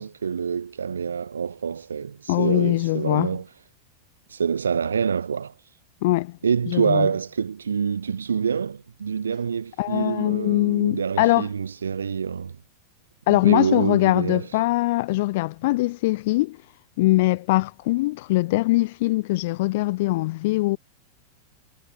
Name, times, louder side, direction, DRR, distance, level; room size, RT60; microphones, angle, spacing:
voice 1, 0.0-3.5 4.3-5.7 6.4-12.6 13.3-14.6, right 6 dB, 70° right, 5.4 m, -26 dB
voice 2, 2.3-3.3 6.0-6.4 6.7-7.1 9.8-11.5 13.3-16.6 17.0-20.8, left 20 dB, 50° left, 6.9 m, -22 dB
figure-of-eight pair, 90°, 0 cm